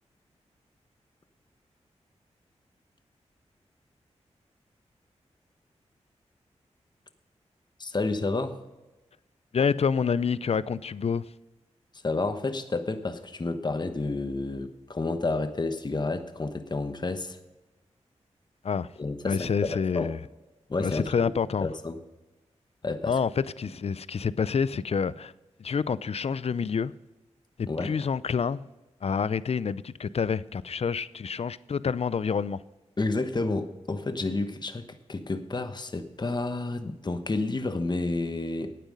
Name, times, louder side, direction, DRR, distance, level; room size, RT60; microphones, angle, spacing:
voice 1, 7.8-8.6 12.0-17.4 19.0-20.1 20.7-21.3 21.6-22.0 22.8-23.1 27.7-27.9 33.0-38.8, left 3 dB, 35° left, 1.1 m, -30 dB
voice 2, 9.5-11.2 18.6-18.9 19.2-20.2 20.8-21.7 23.1-25.3 25.6-26.9 27.6-28.7 29.0-32.6, left 6 dB, 55° left, 0.5 m, -28 dB
12.5 x 9.1 x 5.4 m
cardioid pair, 50°, 12 cm